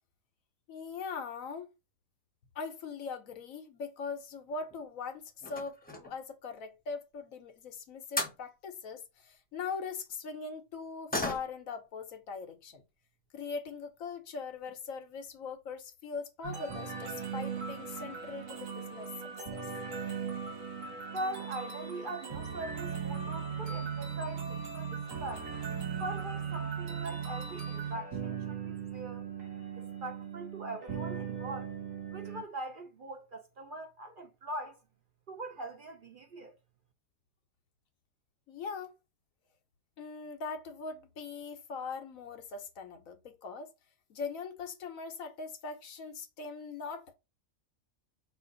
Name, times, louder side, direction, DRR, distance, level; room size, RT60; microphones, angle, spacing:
voice 1, 0.7-1.7 2.5-12.8 13.3-19.1 19.5-19.6 38.5-38.9 40.0-43.7 44.1-47.1, left 5 dB, 85° left, 1.3 m, -41 dB
sound 1, 4.4-4.8 5.4-6.3 7.8-7.9 8.2-8.4 11.1-11.8 12.1-12.2 12.6-12.8 13.6-13.7 14.0-14.1 14.5-14.8 15.1-15.2 15.5-15.6, left 2 dB, 10° left, 0.7 m, -37 dB
sound 2, 16.4-32.4, right 6 dB, 75° right, 1.6 m, -38 dB
voice 2, 21.1-25.5 26.0-29.3 29.7-31.7 32.1-34.8 35.3-36.6, right 1 dB, 50° right, 0.7 m, -42 dB
5.4 x 2.5 x 3.8 m
omnidirectional pair, 1.4 m